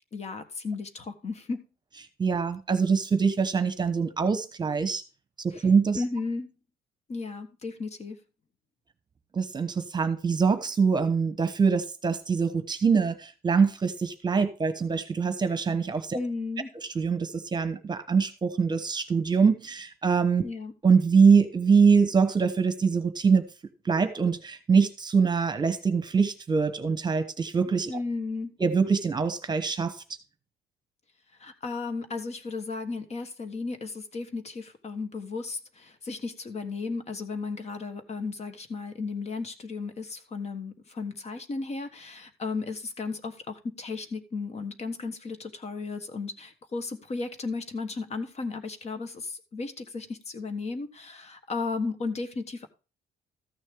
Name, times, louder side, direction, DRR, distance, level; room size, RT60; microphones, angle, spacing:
voice 1, 0.1-1.7 5.5-5.7 6.0-6.5 7.1-8.2 16.1-16.7 20.4-20.7 27.9-28.6 31.4-52.7, left 4 dB, 40° left, 1.4 m, -34 dB
voice 2, 2.2-5.0 5.4-6.0 9.3-16.2 16.9-20.4 20.8-23.5 23.8-27.9 28.6-30.0, right 5 dB, 25° right, 1.1 m, -24 dB
14.0 x 6.4 x 3.7 m
cardioid pair, 110°, 17 cm